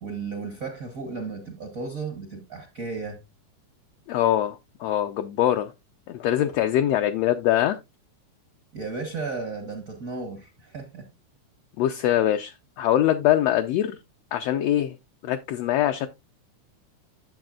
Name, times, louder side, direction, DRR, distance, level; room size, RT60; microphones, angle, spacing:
voice 1, 0.0-3.2 8.7-11.1, right 4 dB, 55° right, 0.9 m, -34 dB
voice 2, 4.1-5.7 6.1-7.8 11.8-14.0 14.3-14.9 15.2-16.1, left 12 dB, 75° left, 1.5 m, -23 dB
10.5 x 7.3 x 2.4 m
omnidirectional pair, 3.5 m